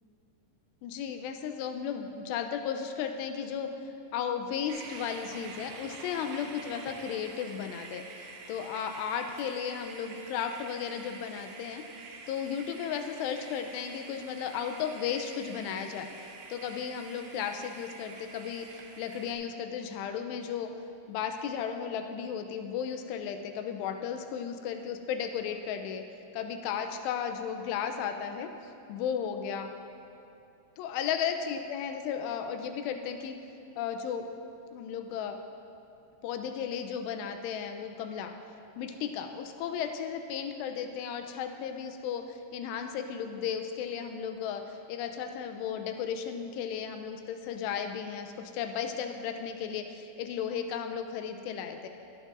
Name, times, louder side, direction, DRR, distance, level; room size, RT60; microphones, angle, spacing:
voice 1, 0.8-3.7 4.1-11.8 12.3-20.7 21.1-26.0 26.3-29.7 30.8-33.3 33.8-34.3 34.7-35.4 36.2-38.3 38.8-51.9, left 7 dB, 85° left, 6 dB, 2.5 m, -35 dB
sound 1, 4.7-19.3, right 4 dB, 85° right, 3.3 m, -47 dB
16.5 x 9.2 x 2.5 m, 2.8 s
omnidirectional pair, 5.3 m